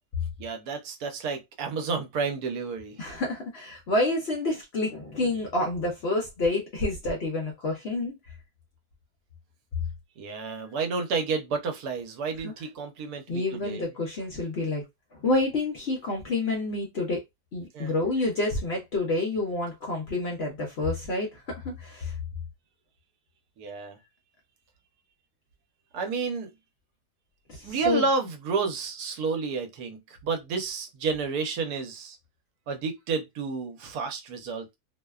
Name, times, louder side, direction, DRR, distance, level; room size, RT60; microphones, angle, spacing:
voice 1, 0.4-3.0 10.2-13.8 17.7-17.9 23.6-24.0 25.9-26.5 27.6-32.2 32.7-34.8, right 4 dB, 75° right, 1.1 m, -30 dB
voice 2, 3.0-8.1 12.4-12.5 13.3-14.8 15.1-17.2 17.5-22.1 27.5-28.0, left 2 dB, 60° left, 0.7 m, -28 dB
2.7 x 2.1 x 2.3 m
omnidirectional pair, 1.6 m